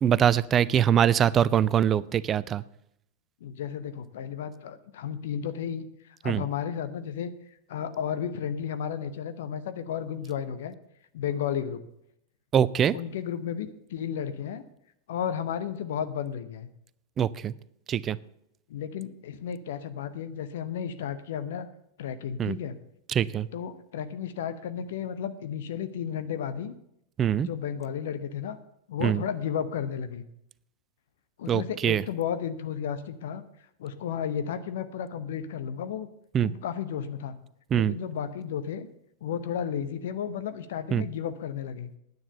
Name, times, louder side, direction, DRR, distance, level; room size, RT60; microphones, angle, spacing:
voice 1, 0.0-2.6 6.2-6.4 12.5-13.0 17.2-17.5 17.9-18.2 22.4-22.5 23.1-23.5 27.2-27.5 29.0-29.2 31.5-32.0 36.3-36.5 37.7-38.0 40.9-41.0, right 9 dB, 25° right, 19 dB, 0.4 m, -23 dB
voice 2, 3.4-7.3 7.7-10.7 11.1-11.8 12.9-14.6 15.1-16.7 18.7-21.7 22.0-22.7 23.5-26.7 27.4-28.6 28.9-30.2 31.4-33.4 33.8-36.1 36.4-37.4 37.7-38.9 39.2-41.9, left 8 dB, 55° left, 12 dB, 0.8 m, -33 dB
9.9 x 9.3 x 6.8 m, 0.76 s
figure-of-eight pair, 90°, 0 cm